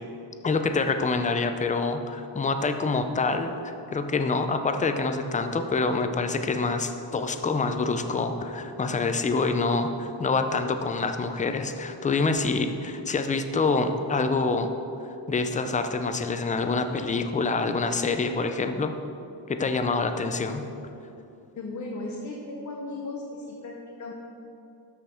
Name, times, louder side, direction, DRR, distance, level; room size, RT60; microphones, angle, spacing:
voice 1, 0.4-14.7 15.3-18.9 19.5-20.6, left 3 dB, 20° left, 7 dB, 0.4 m, -26 dB
voice 2, 21.6-24.1, left 2 dB, 40° left, -1 dB, 0.8 m, -36 dB
12.5 x 5.6 x 4.3 m, 2.8 s
wide cardioid pair, 170°, 45 cm